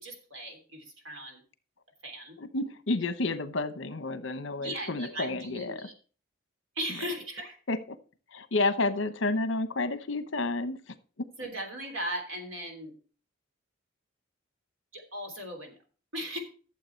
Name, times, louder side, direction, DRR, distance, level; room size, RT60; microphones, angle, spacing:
voice 1, 0.0-1.4 2.0-2.4 4.6-5.9 6.7-7.6 11.4-12.9 14.9-15.7 16.1-16.4, equal, 65° right, 3 dB, 3.2 m, -37 dB
voice 2, 2.4-5.9 7.7-7.8 8.3-10.9, left 2 dB, 60° left, 12 dB, 0.9 m, -30 dB
12.0 x 7.5 x 4.5 m, 0.39 s
head